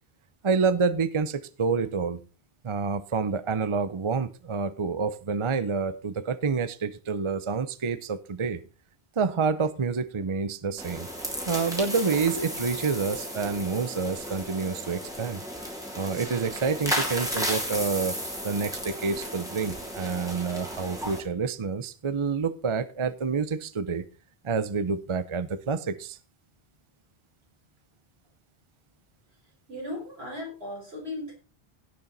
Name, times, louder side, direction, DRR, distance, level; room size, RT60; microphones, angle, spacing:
voice 1, 0.4-2.2 2.6-8.6 9.2-11.1 11.5-15.4 15.9-18.2 18.4-24.0 24.4-26.2, right 5 dB, 35° right, 14 dB, 0.7 m, -28 dB
sound 1, 10.8-21.2, equal, 5° right, 3.4 m, -34 dB
voice 2, 29.7-31.3, left 1 dB, 85° right, -1 dB, 5.5 m, -36 dB
16.5 x 6.7 x 4.1 m, 0.32 s
omnidirectional pair, 1.0 m